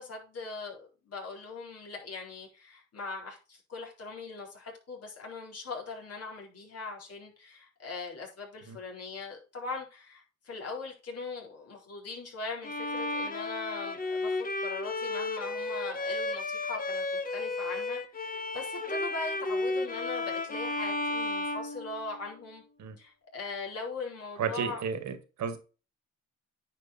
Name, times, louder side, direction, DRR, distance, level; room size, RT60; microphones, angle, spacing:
voice 1, 0.0-17.0 17.3-22.6 23.0-24.8, left 3 dB, 55° left, 4.3 m, -40 dB
Bowed string instrument, 12.6-22.4, left 2 dB, 30° left, 1.3 m, -33 dB
voice 2, 24.4-25.6, right 6 dB, 65° right, 2.0 m, -33 dB
9.7 x 5.3 x 4.3 m
cardioid pair, 90°, 30 cm